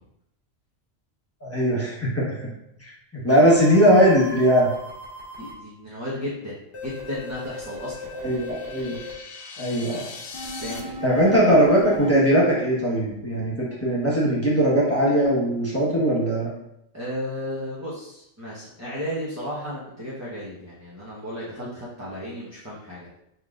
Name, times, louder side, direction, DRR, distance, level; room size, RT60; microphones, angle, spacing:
voice 1, 1.4-2.5 2.8-4.7 8.1-9.0 9.6-10.0 11.0-16.5, equal, 10° left, -6 dB, 1.2 m, -20 dB
sound 1, 3.3-5.5 6.7-9.1 10.3-12.1, left 1 dB, 45° left, 1.4 m, -38 dB
voice 2, 5.4-8.1 10.6-10.9 16.9-23.1, equal, 15° right, -9 dB, 1.0 m, -34 dB
sound 2, 8.0-10.8, left 4 dB, 65° left, 0.8 m, -40 dB
5.8 x 3.6 x 2.5 m, 0.78 s
omnidirectional pair, 1.3 m